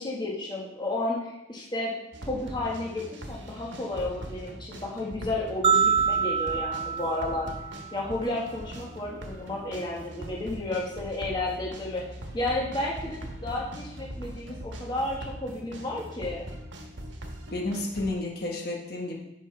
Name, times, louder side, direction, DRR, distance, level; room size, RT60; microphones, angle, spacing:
voice 1, 0.0-1.9 2.3-7.5 7.9-12.0 12.3-16.4, left 2 dB, 25° left, -3 dB, 1.5 m, -32 dB
sound 1, 2.1-18.1, right 1 dB, 85° right, 1.2 m, -41 dB
sound 2, 5.6-8.0, right 6 dB, 30° right, 0.3 m, -26 dB
voice 2, 17.5-19.1, left 2 dB, 60° left, -1 dB, 1.3 m, -31 dB
10.5 x 5.8 x 3.4 m, 0.88 s
head